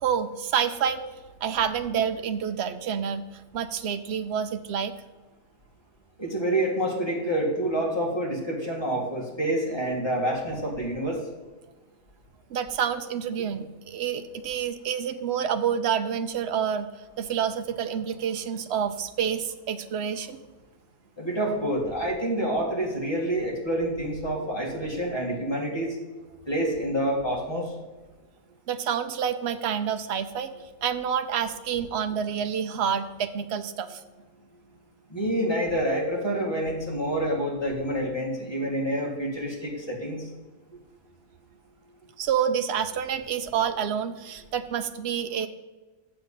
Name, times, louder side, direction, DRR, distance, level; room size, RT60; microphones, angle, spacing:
voice 1, 0.0-1.0 1.4-3.2 3.5-4.9 12.5-16.9 17.2-20.4 28.7-30.5 30.8-34.0 42.2-45.5, right 8 dB, 65° right, 9 dB, 0.6 m, -28 dB
voice 2, 6.2-11.2 21.2-26.0 26.5-27.7 35.1-40.3, right 1 dB, 15° left, -3 dB, 2.2 m, -27 dB
7.6 x 6.7 x 5.6 m, 1.3 s
omnidirectional pair, 1.8 m